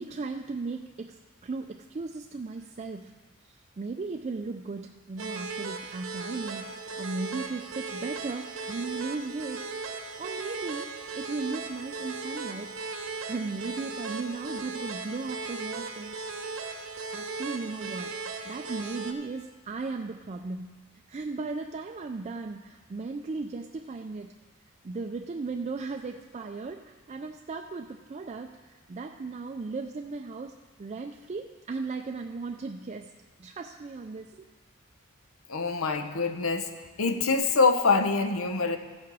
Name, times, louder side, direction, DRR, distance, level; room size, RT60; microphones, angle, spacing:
voice 1, 0.0-3.1 3.5-9.7 10.2-12.8 13.3-16.5 17.1-18.2 18.4-20.8 21.1-24.3 24.8-30.5 30.8-33.1 33.4-34.4, right 3 dB, 35° right, 4 dB, 0.4 m, -36 dB
sound 1, 5.2-19.1, right 4 dB, 75° right, 0.9 m, -37 dB
voice 2, 35.5-36.7 37.0-38.8, left 4 dB, 85° left, 8 dB, 0.9 m, -25 dB
14.0 x 6.5 x 5.5 m, 1.4 s
head